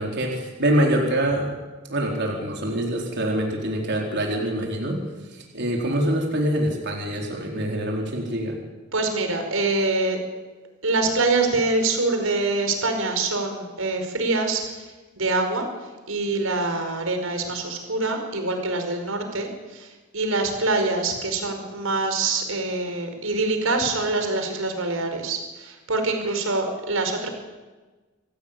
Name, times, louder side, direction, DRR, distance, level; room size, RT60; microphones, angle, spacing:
voice 1, 0.0-1.5 1.9-5.0 5.3-8.5, right 1 dB, 60° right, 0 dB, 4.6 m, -25 dB
voice 2, 8.9-10.2 10.8-14.8 15.2-15.7 16.1-19.9 20.1-27.3, right 3 dB, 85° right, 5 dB, 5.1 m, -25 dB
26.5 x 17.5 x 9.0 m, 1.3 s
head